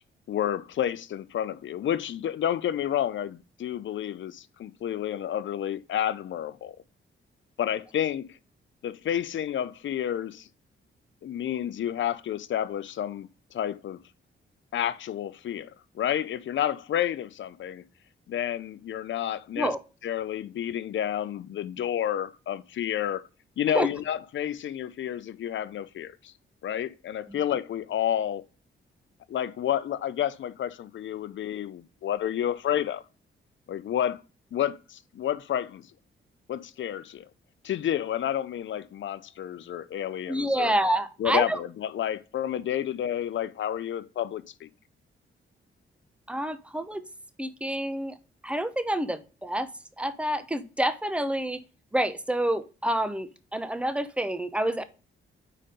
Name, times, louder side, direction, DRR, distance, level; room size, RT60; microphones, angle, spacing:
voice 1, 0.3-6.8 7.6-8.4 8.8-10.5 11.2-14.0 14.7-17.8 18.3-19.7 20.0-23.2 23.6-26.3 26.6-28.4 29.3-33.0 33.7-34.2 34.5-35.9 36.5-37.3 37.6-40.7 41.2-44.7, left 10 dB, 65° left, 0.6 m, -30 dB
voice 2, 40.3-41.6 46.3-47.0 47.4-48.1 48.4-49.7 50.0-51.6 51.9-54.8, right 1 dB, 5° right, 0.8 m, -28 dB
5.0 x 4.2 x 5.1 m
cardioid pair, 80°, 21 cm